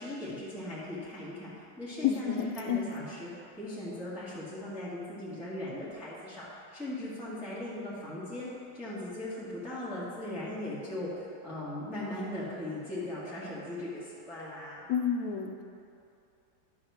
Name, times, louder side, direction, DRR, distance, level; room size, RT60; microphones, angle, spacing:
voice 1, 0.0-1.5 1.8-8.5 8.7-14.9, left 1 dB, ahead, -10 dB, 1.5 m, -39 dB
voice 2, 2.0-2.9 14.9-15.6, left 7 dB, 70° left, 4 dB, 1.1 m, -30 dB
10.5 x 3.5 x 6.4 m, 2.6 s
omnidirectional pair, 2.1 m